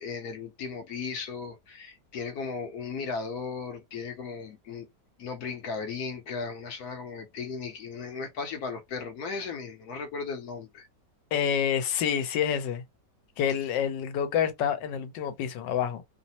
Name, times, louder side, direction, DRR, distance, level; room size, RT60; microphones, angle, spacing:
voice 1, 0.0-4.9 5.2-10.9, left 5 dB, 70° left, 1.1 m, -36 dB
voice 2, 11.3-12.8 13.4-16.0, left 8 dB, 85° left, 1.3 m, -28 dB
3.1 x 2.0 x 2.7 m
omnidirectional pair, 1.9 m